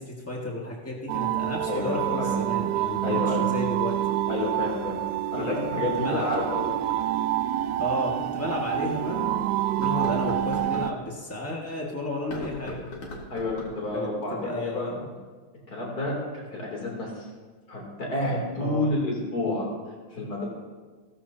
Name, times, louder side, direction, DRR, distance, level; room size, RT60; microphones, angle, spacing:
voice 1, 0.0-4.0 5.4-5.5 6.0-6.3 7.8-12.8 13.9-15.1 18.6-18.9, left 2 dB, 15° left, -3 dB, 0.6 m, -33 dB
sound 1, 1.1-10.9, right 13 dB, 85° right, 2.2 m, -27 dB
voice 2, 1.7-2.4 3.0-3.5 4.3-5.0 5.3-6.7 13.3-14.9 15.7-16.1 16.5-17.3 17.7-19.7 20.1-20.4, left 2 dB, 30° left, -2 dB, 3.3 m, -29 dB
sound 2, 7.7-7.8 8.4-8.5 9.7-10.9 12.2-13.9, left 1 dB, 50° left, 2.7 m, -38 dB
16.5 x 14.0 x 2.8 m, 1.4 s
omnidirectional pair, 3.8 m